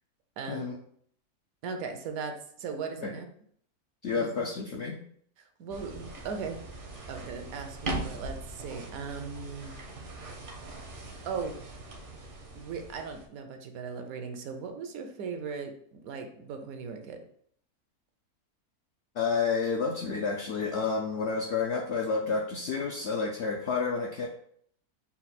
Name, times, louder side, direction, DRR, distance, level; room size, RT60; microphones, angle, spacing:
voice 1, 0.4-0.7 1.6-3.3 4.1-4.5 5.4-6.6 7.1-9.8 11.2-11.6 12.5-17.2, right 5 dB, 70° right, 6 dB, 1.0 m, -38 dB
voice 2, 4.0-5.0 19.2-24.3, left 5 dB, 75° left, -1 dB, 0.6 m, -30 dB
sound 1, 5.7-13.3, right 2 dB, 50° right, 0.6 m, -40 dB
4.3 x 2.3 x 4.1 m, 0.63 s
omnidirectional pair, 1.6 m